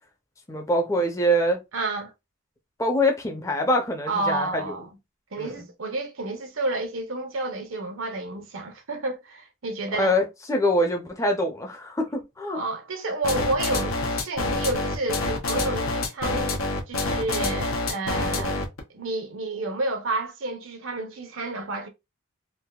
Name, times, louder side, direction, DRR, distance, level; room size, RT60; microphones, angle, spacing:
voice 1, 0.5-1.6 2.8-4.7 5.4-5.7 9.9-12.6 18.4-18.5, equal, 15° left, 0.6 m, -24 dB
voice 2, 1.7-2.1 4.1-4.9 5.3-10.2 12.5-18.6 18.9-21.9, right 2 dB, 70° right, 0.8 m, -30 dB
sound 1, 13.2-18.8, left 2 dB, 80° left, 0.9 m, -26 dB
3.4 x 2.5 x 2.3 m
head